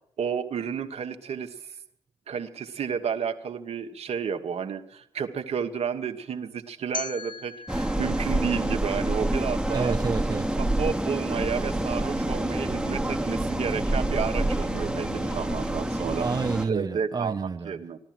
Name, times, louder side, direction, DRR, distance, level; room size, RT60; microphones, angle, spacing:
voice 1, 0.2-1.5 2.3-9.9 10.6-16.3 16.7-18.0, right 7 dB, 70° right, 1.2 m, -31 dB
sound 1, 6.9-9.9, left 4 dB, 45° left, 0.8 m, -40 dB
sound 2, 7.7-16.7, right 1 dB, 5° right, 1.2 m, -27 dB
voice 2, 9.7-10.6 16.2-17.8, right 4 dB, 35° right, 0.6 m, -29 dB
sound 3, 11.3-16.7, right 5 dB, 90° right, 1.2 m, -43 dB
15.5 x 12.0 x 7.5 m
supercardioid pair, 45°, 11 cm